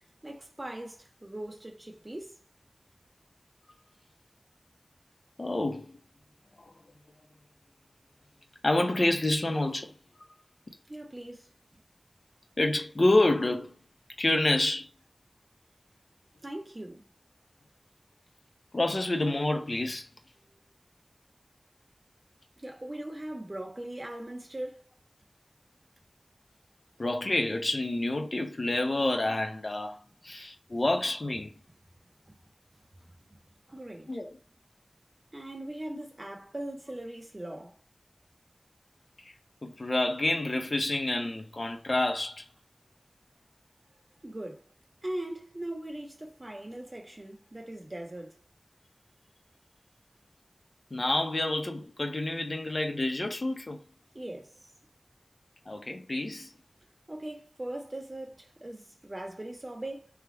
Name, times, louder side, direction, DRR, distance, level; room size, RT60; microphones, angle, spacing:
voice 1, 0.2-2.4 10.9-11.5 16.4-17.0 22.6-24.9 32.3-32.4 33.7-34.2 35.3-37.8 44.2-44.6 45.0-48.4 54.1-54.7 57.1-60.1, right 1 dB, 40° right, 1.4 m, -40 dB
voice 2, 5.4-5.9 8.6-9.9 12.6-13.7 14.2-14.9 18.7-20.1 27.0-30.0 30.2-31.5 34.1-34.3 39.6-42.4 50.9-53.8 55.7-56.5, left 2 dB, 60° left, 0.8 m, -28 dB
3.5 x 3.2 x 4.4 m
wide cardioid pair, 55°, 0 cm